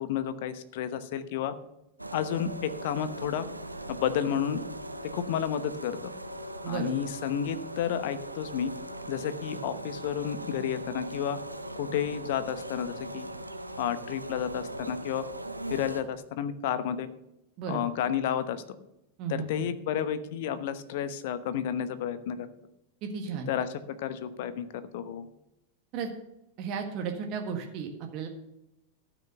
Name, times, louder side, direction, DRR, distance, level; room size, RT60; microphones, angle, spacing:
voice 1, 0.0-1.5 2.1-3.5 3.9-4.6 5.1-6.1 6.7-8.7 9.1-11.4 11.8-13.3 13.8-15.2 15.7-17.1 17.7-18.6 19.3-22.5 23.5-23.7 24.0-24.7 24.9-25.3, left 9 dB, 50° left, 13 dB, 1.0 m, -31 dB
sound 1, 2.0-16.0, right 1 dB, 85° right, 0.8 m, -40 dB
voice 2, 6.6-7.0 17.6-17.8 19.2-19.7 23.0-23.5 25.9-26.1 26.6-28.3, right 6 dB, 40° right, 3 dB, 1.6 m, -34 dB
13.0 x 6.2 x 6.7 m, 0.87 s
figure-of-eight pair, 90°, 0 cm